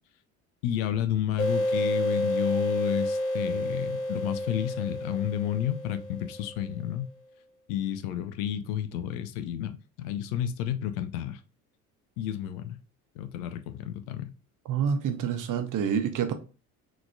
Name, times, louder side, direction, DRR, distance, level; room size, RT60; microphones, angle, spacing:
voice 1, 0.6-7.1 7.7-11.4 12.2-12.8 13.2-14.3, left 10 dB, 70° left, 0.6 m, -31 dB
sound 1, 1.4-6.7, left 1 dB, 35° left, 1.2 m, -30 dB
voice 2, 14.6-16.3, right 7 dB, 45° right, 0.8 m, -27 dB
3.9 x 3.0 x 2.2 m
hypercardioid pair, 60°, 43 cm